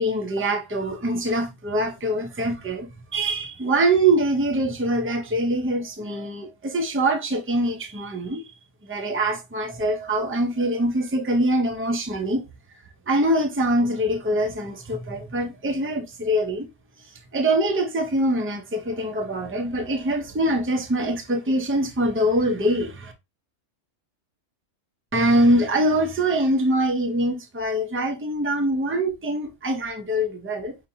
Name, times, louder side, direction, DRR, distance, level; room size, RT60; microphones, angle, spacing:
voice 1, 0.0-8.4 8.8-12.4 13.1-16.7 17.3-23.1 25.1-30.8, right 1 dB, 20° right, 0.3 m, -24 dB
5.4 x 2.7 x 2.7 m
omnidirectional pair, 1.4 m